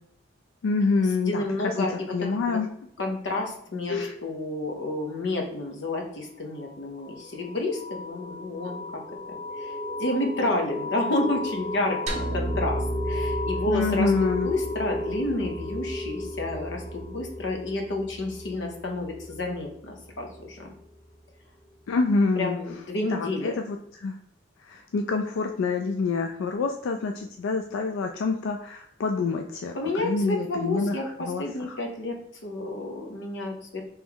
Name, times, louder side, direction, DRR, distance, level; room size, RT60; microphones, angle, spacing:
voice 1, 0.6-2.7 3.9-4.1 13.7-14.5 21.9-22.6 23.1-24.2 24.6-31.8, left 4 dB, 85° left, 4 dB, 0.3 m, -27 dB
voice 2, 1.1-2.6 3.0-8.8 9.3-20.7 22.4-23.6 29.8-33.8, left 2 dB, 60° left, 1 dB, 0.8 m, -30 dB
sound 1, 6.5-20.9, left 1 dB, 30° left, 1.4 m, -34 dB
sound 2, 12.1-16.4, right 1 dB, 35° right, 0.6 m, -33 dB
3.4 x 3.1 x 3.5 m, 0.72 s
head